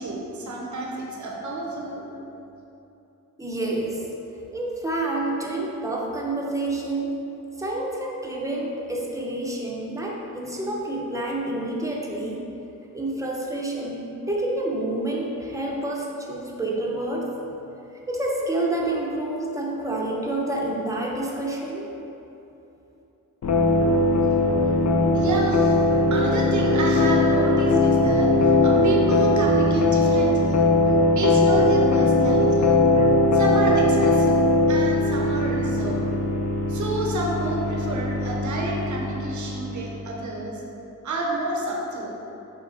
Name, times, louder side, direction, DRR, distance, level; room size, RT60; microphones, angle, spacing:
voice 1, 0.0-2.1 25.1-25.9 26.1-30.7 31.1-32.8 33.3-34.4 34.7-36.1 36.7-40.6 41.0-42.1, right 2 dB, 55° right, -2 dB, 0.8 m, -29 dB
voice 2, 3.4-4.1 4.5-7.2 7.6-12.5 12.9-17.3 18.1-21.9, right 2 dB, 10° right, -3 dB, 0.7 m, -28 dB
sound 1, 23.4-40.2, left 2 dB, 50° left, 0.6 m, -20 dB
5.4 x 2.1 x 4.2 m, 2.9 s
cardioid pair, 55°, 36 cm